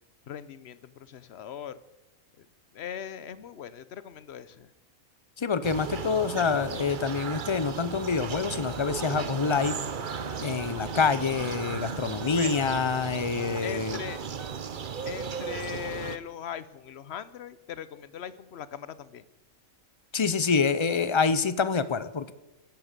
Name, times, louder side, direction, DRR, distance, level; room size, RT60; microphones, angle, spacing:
voice 1, 0.3-1.8 2.4-2.5 2.7-4.7 12.3-12.7 13.6-14.2 15.1-19.2, left 9 dB, 55° left, 16 dB, 1.0 m, -39 dB
voice 2, 5.4-9.8 10.4-14.0 20.1-22.3, left 5 dB, 30° left, 14 dB, 0.5 m, -26 dB
sound 1, 5.6-16.2, right 6 dB, 45° right, 0.9 m, -35 dB
Wind instrument woodwind instrument, 8.8-14.5, right 5 dB, 80° right, 2.0 m, -46 dB
16.5 x 12.0 x 6.7 m, 1.0 s
omnidirectional pair, 1.4 m